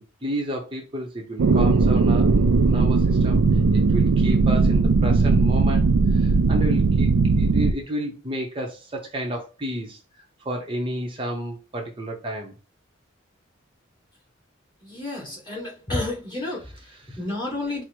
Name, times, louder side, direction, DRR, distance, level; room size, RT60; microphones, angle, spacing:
voice 1, 0.0-3.4 3.7-10.0 10.4-12.5 16.6-17.2 17.5-17.8, equal, 25° right, 0.7 m, -32 dB
sound 1, 1.4-7.7, right 4 dB, 70° right, 0.4 m, -18 dB
voice 2, 14.8-16.6 17.2-17.8, left 2 dB, 25° left, 1.9 m, -30 dB
4.6 x 2.0 x 4.4 m
head